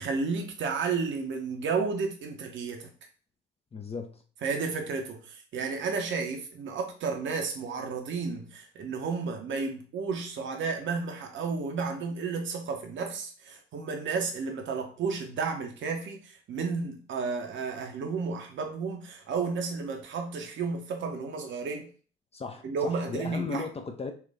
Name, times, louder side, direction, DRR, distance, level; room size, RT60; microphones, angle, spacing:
voice 1, 0.0-2.9 4.4-21.9 22.6-23.7, right 4 dB, 40° right, 0.9 m, -32 dB
voice 2, 3.7-4.2 22.3-24.1, left 4 dB, 20° left, 0.6 m, -36 dB
4.4 x 2.5 x 3.3 m
figure-of-eight pair, 50°, 30 cm